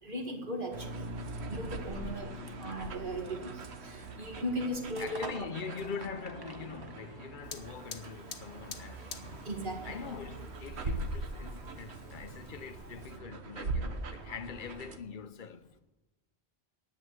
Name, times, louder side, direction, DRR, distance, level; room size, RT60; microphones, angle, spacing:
voice 1, 0.0-1.1 1.5-5.5 9.4-10.0, equal, 55° right, 2.5 m, -38 dB
sound 1, 0.7-15.0, right 2 dB, 90° right, 1.3 m, -41 dB
sound 2, 1.6-8.4, right 2 dB, 25° right, 0.9 m, -51 dB
voice 2, 5.0-9.2 9.8-15.8, left 6 dB, 60° left, 0.7 m, -43 dB
Fire, 7.4-13.2, left 5 dB, 90° left, 1.5 m, -50 dB
11.0 x 8.7 x 7.9 m
omnidirectional pair, 1.1 m